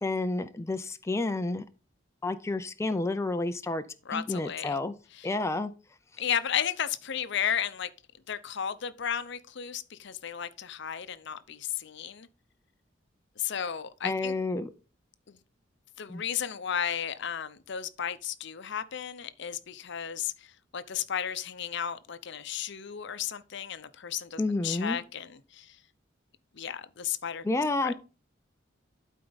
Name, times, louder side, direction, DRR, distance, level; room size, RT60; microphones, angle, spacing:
voice 1, 0.0-1.6 2.2-3.8 4.1-4.9 5.2-5.7 14.0-14.7 16.1-16.2 24.4-25.0 27.4-27.9, left 2 dB, 15° left, 0.4 m, -30 dB
voice 2, 4.1-4.8 5.1-5.3 6.2-7.9 8.3-12.3 13.4-14.3 15.3-15.4 16.0-25.8 26.5-27.4 27.8-27.9, left 8 dB, 65° left, 0.7 m, -34 dB
12.0 x 4.6 x 4.0 m
head